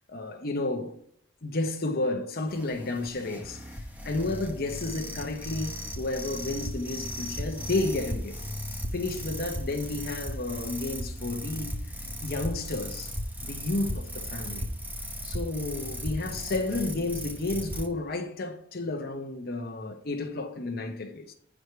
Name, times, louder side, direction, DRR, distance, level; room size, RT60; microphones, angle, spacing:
voice 1, 0.1-1.0 1.4-8.4 8.9-11.7 12.2-13.1 13.4-14.6 15.2-21.3, left 2 dB, 45° left, 0.9 m, -32 dB
sound 1, 2.5-17.9, equal, 10° right, 0.9 m, -36 dB
8.0 x 5.0 x 4.8 m
head